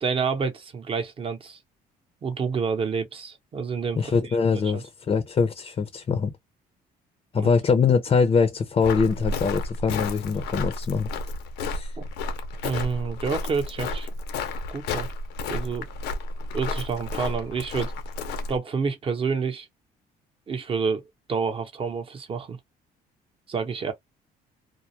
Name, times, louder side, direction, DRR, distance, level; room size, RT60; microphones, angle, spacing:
voice 1, 0.0-1.6 2.2-4.4 4.7-4.8 7.3-7.5 12.0-12.1 12.6-14.1 14.7-15.1 15.5-15.9 16.5-17.9 18.5-19.7 20.5-21.0 21.3-22.6 23.5-23.9, right 5 dB, 35° right, 0.7 m, -28 dB
voice 2, 4.0-6.3 7.3-11.1 11.7-11.9, left 5 dB, 30° left, 0.5 m, -23 dB
Walk footsteps, 8.8-18.6, left 3 dB, 80° left, 0.6 m, -32 dB
2.3 x 2.0 x 2.7 m
cardioid pair, 110°, 17 cm